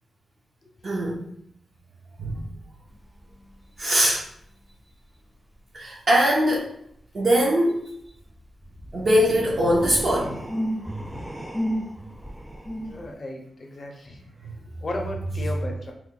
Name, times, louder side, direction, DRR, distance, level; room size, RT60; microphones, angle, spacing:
voice 1, 0.8-1.2 2.2-2.3 3.8-4.2 5.7-6.7 7.1-7.9 8.9-10.5, equal, 50° right, -4 dB, 0.6 m, -21 dB
sound 1, 2.9-3.8 4.1-4.2 8.1-13.1, equal, 10° right, 0.3 m, -33 dB
voice 2, 12.8-14.2 14.8-15.9, left 1 dB, 35° left, 2 dB, 0.6 m, -35 dB
3.0 x 2.1 x 3.6 m, 0.68 s
wide cardioid pair, 135°, 0 cm